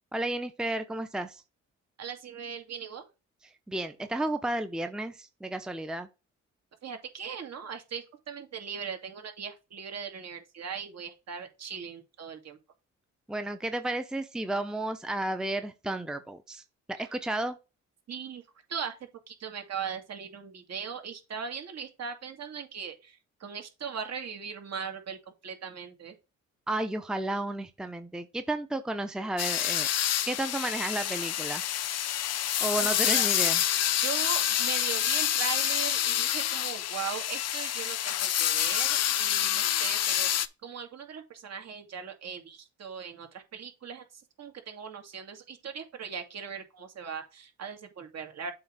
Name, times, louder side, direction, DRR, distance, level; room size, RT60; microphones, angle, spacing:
voice 1, 0.1-1.4 3.7-6.1 13.3-16.6 16.9-17.6 26.7-29.9 30.3-31.6 32.6-33.6, right 1 dB, ahead, 0.8 m, -32 dB
voice 2, 2.0-3.0 6.8-12.6 18.1-18.4 18.7-19.0 19.3-25.2 25.4-26.2 32.8-33.3 34.0-44.0 44.4-48.5, right 6 dB, 60° right, 2.2 m, -39 dB
sound 1, 29.4-40.5, left 11 dB, 55° left, 0.7 m, -27 dB
7.7 x 3.2 x 6.1 m
cardioid pair, 90°, 30 cm